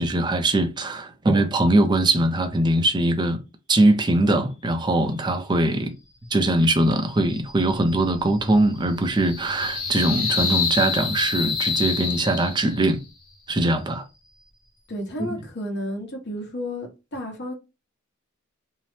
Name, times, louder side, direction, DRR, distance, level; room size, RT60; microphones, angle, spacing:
voice 1, 0.0-3.4 3.7-5.9 6.3-13.0 13.5-14.0 15.2-15.3, right 1 dB, 20° right, 0.4 m, -21 dB
sound 1, 7.0-13.0, left 5 dB, 20° left, 1.0 m, -28 dB
voice 2, 14.9-17.5, left 1 dB, 55° left, 1.0 m, -32 dB
2.7 x 2.0 x 3.1 m
head